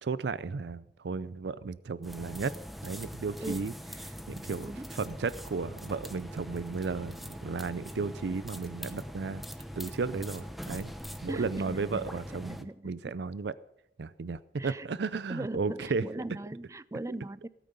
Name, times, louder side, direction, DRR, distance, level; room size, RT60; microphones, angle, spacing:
voice 1, 0.0-2.5 2.8-3.7 4.0-9.4 9.8-10.9 11.2-13.6 14.0-16.0, right 4 dB, 70° right, 17 dB, 0.5 m, -34 dB
sound 1, 2.0-12.6, equal, ahead, 0.8 m, -42 dB
voice 2, 4.6-5.0 11.3-13.0 14.6-14.9 15.3-17.5, right 2 dB, 15° right, 18 dB, 0.4 m, -39 dB
sound 2, 5.9-11.1, equal, 40° right, 4.2 m, -61 dB
17.0 x 9.2 x 6.8 m, 0.75 s
head